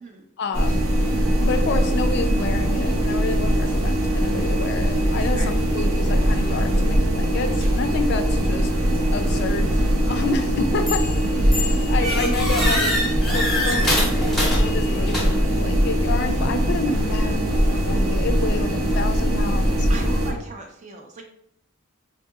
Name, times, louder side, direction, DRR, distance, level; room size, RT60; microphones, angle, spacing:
voice 1, 0.4-0.9 1.4-8.7 9.1-11.1 11.5-12.9 13.3-19.9, left 3 dB, 50° left, 8 dB, 0.3 m, -29 dB
sound 1, 0.5-20.3, equal, 70° right, 0.6 m, -21 dB
sound 2, 10.9-11.2 11.5-15.6, left 1 dB, ahead, 0.6 m, -25 dB
voice 2, 19.9-21.2, right 3 dB, 35° right, 3 dB, 0.3 m, -38 dB
3.6 x 2.7 x 2.3 m, 0.72 s
head